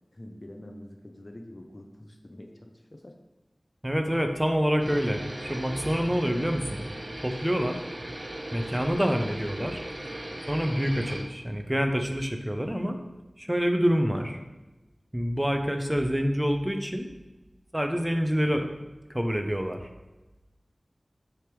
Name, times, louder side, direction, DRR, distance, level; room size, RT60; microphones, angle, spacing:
voice 1, 0.1-3.2 4.1-4.2 14.1-14.5, left 1 dB, 40° left, 3 dB, 0.6 m, -46 dB
voice 2, 3.8-6.8 7.2-7.8 8.5-9.8 10.5-13.0 13.4-14.4 15.1-17.1 17.7-18.7 19.1-19.9, equal, 10° right, 5 dB, 0.6 m, -27 dB
sound 1, 4.8-11.2, right 1 dB, 45° right, 0.9 m, -38 dB
6.2 x 3.4 x 4.6 m, 1.1 s
wide cardioid pair, 60°, 0 cm